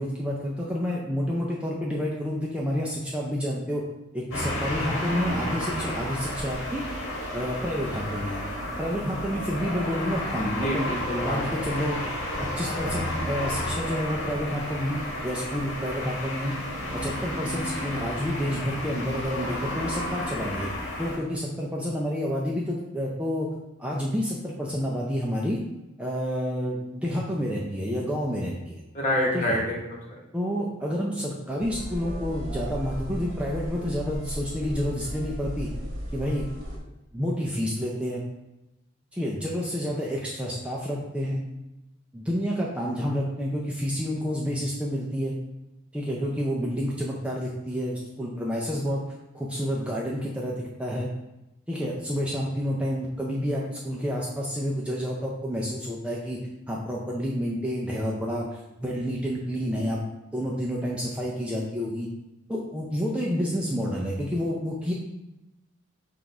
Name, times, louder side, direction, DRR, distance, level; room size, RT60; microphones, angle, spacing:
voice 1, 0.0-3.8 4.1-6.9 7.3-8.4 8.8-10.9 11.2-12.0 12.4-16.5 16.9-20.7 21.0-23.5 23.8-25.6 26.0-28.8 29.3-29.6 30.3-35.7 36.1-36.5 37.1-38.2 39.1-41.4 42.1-45.3 45.9-49.0 49.3-51.1 51.7-56.4 56.7-60.0 60.3-62.1 62.5-64.9, equal, 5° right, -3 dB, 0.4 m, -29 dB
sound 1, 4.3-21.2, left 1 dB, 85° left, 1.3 m, -32 dB
voice 2, 10.6-11.4 28.9-30.2, left 1 dB, 35° left, -3 dB, 1.1 m, -27 dB
sound 2, 31.6-36.8, equal, 80° right, 0.9 m, -35 dB
5.8 x 2.5 x 3.4 m, 0.95 s
head